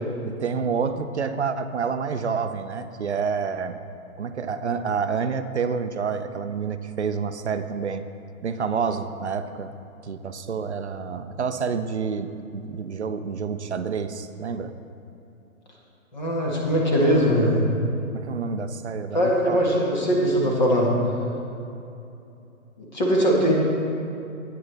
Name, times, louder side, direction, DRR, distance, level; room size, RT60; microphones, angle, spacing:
voice 1, 0.3-3.8 4.2-8.0 8.4-9.7 10.0-14.7 18.1-19.6, right 6 dB, 55° right, 10 dB, 0.5 m, -28 dB
voice 2, 16.1-17.6 19.1-20.9 22.8-23.5, equal, 30° left, -3 dB, 1.5 m, -21 dB
13.5 x 9.4 x 3.3 m, 2.7 s
hypercardioid pair, 175°, 43 cm